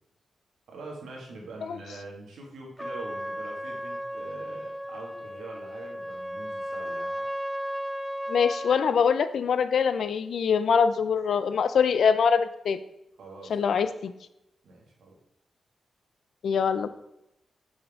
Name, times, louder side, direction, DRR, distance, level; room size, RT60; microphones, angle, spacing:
voice 1, 0.7-7.3 13.2-13.8 14.6-15.1, right 3 dB, 85° right, -1 dB, 2.1 m, -44 dB
Trumpet, 2.8-9.0, equal, 5° left, 0.5 m, -35 dB
voice 2, 8.3-12.8 13.5-14.1 16.4-16.9, left 6 dB, 70° left, 12 dB, 0.5 m, -24 dB
7.2 x 6.0 x 3.7 m, 0.84 s
cardioid pair, 95°, 0 cm